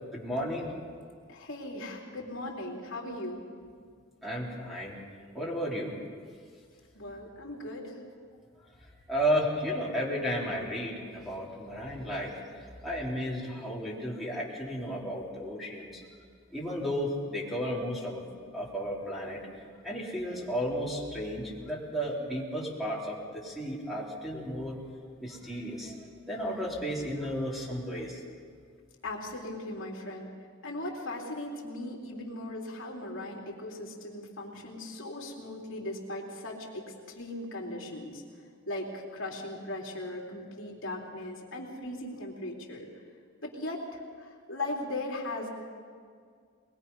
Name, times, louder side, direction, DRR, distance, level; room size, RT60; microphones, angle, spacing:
voice 1, 0.1-0.7 4.2-4.9 5.3-6.0 9.1-12.3 12.8-15.9 16.5-18.2 18.5-19.4 19.8-24.7 25.2-26.0 26.3-28.2, equal, ahead, -4 dB, 3.7 m, -33 dB
voice 2, 1.3-3.4 6.9-8.0 29.0-30.3 30.6-36.8 37.2-38.2 38.7-42.9 43.4-45.5, left 1 dB, 65° left, -1 dB, 3.6 m, -38 dB
22.0 x 22.0 x 5.6 m, 2.1 s
head